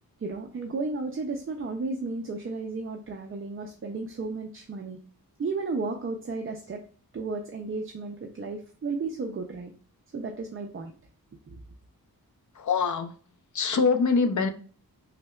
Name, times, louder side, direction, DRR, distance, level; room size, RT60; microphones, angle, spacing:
voice 1, 0.2-5.0 5.4-6.8 7.1-9.7 10.1-10.9 11.5-11.6, right 3 dB, 35° right, 0.4 m, -33 dB
voice 2, 12.6-13.1 13.5-14.5, left 5 dB, 55° left, 0.5 m, -24 dB
5.6 x 2.1 x 2.3 m
wide cardioid pair, 135°, 37 cm